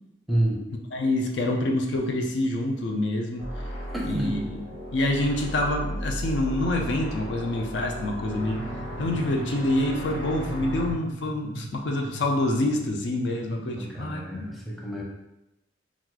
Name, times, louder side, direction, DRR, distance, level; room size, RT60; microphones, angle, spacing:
voice 1, 0.3-0.6 3.9-4.3 13.8-15.0, right 1 dB, ahead, -3 dB, 0.6 m, -28 dB
voice 2, 0.9-3.5 4.0-4.6 4.9-8.6 9.0-14.5, left 1 dB, 70° left, 2 dB, 0.5 m, -26 dB
sound 1, 3.4-10.9, equal, 85° left, 0.9 m, -35 dB
sound 2, 8.4-14.1, right 3 dB, 50° right, 0.3 m, -40 dB
3.0 x 2.4 x 3.8 m, 0.92 s
head